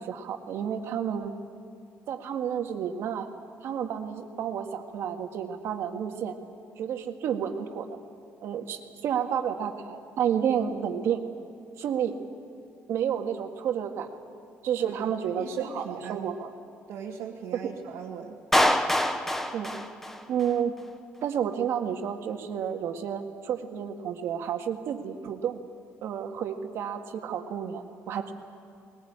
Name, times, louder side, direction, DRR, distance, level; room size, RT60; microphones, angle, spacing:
voice 1, 0.0-1.4 2.1-3.3 3.6-6.4 6.8-7.9 8.4-11.2 11.8-12.2 12.9-14.1 14.6-16.5 17.6-17.7 19.5-19.8 20.3-20.7 21.2-25.6 26.0-28.3, right 8 dB, 60° right, 4 dB, 1.8 m, -30 dB
voice 2, 14.8-15.1 15.4-16.3 16.9-18.4, right 6 dB, 85° right, -3 dB, 1.8 m, -39 dB
Clapping, 18.5-20.6, left 1 dB, 5° left, 1.0 m, -25 dB
21.0 x 20.0 x 8.8 m, 2.5 s
cardioid pair, 145°, 5 cm